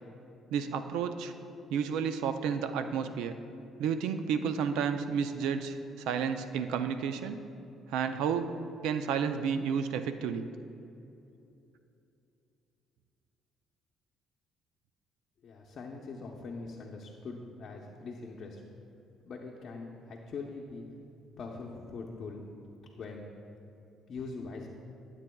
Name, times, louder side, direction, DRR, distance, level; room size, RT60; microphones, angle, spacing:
voice 1, 0.5-1.3 1.7-3.3 3.8-7.4 7.9-8.5 8.8-10.5, right 7 dB, 85° right, 9 dB, 0.4 m, -31 dB
voice 2, 15.4-18.6 19.2-20.8 21.4-22.4 23.0-23.3 24.1-24.7, left 4 dB, 50° left, -1 dB, 0.7 m, -42 dB
13.5 x 7.3 x 2.3 m, 2.7 s
cardioid pair, 100°, 0 cm